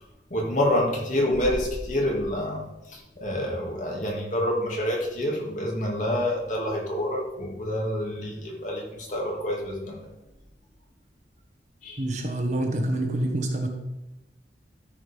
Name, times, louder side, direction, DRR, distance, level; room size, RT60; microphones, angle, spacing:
voice 1, 0.3-2.6 2.9-10.0 11.8-12.0, left 1 dB, 45° left, -2 dB, 2.6 m, -27 dB
voice 2, 12.0-13.7, right 1 dB, 40° right, 3 dB, 1.3 m, -26 dB
13.0 x 5.2 x 5.3 m, 0.95 s
head